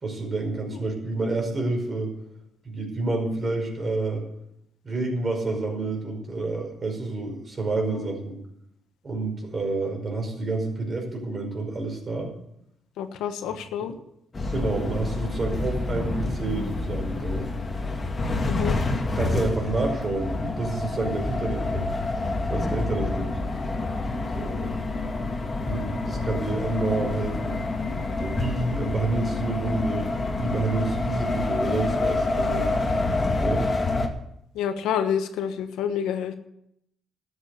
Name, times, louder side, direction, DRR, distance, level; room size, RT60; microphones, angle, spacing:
voice 1, 0.0-2.2 2.7-4.3 4.8-8.4 9.0-12.3 13.8-14.0 14.5-17.5 18.7-18.8 19.1-21.9 22.5-23.3 24.3-24.7 25.7-27.6 28.2-30.1 30.4-32.7 33.4-33.7, right 3 dB, 35° right, 2 dB, 5.2 m, -29 dB
voice 2, 13.0-13.9 18.5-18.8 34.5-36.4, left 8 dB, 90° left, 9 dB, 1.2 m, -28 dB
sound 1, 14.3-34.1, left 2 dB, 30° left, 2.1 m, -27 dB
13.0 x 8.2 x 8.3 m, 0.77 s
cardioid pair, 90°, 0 cm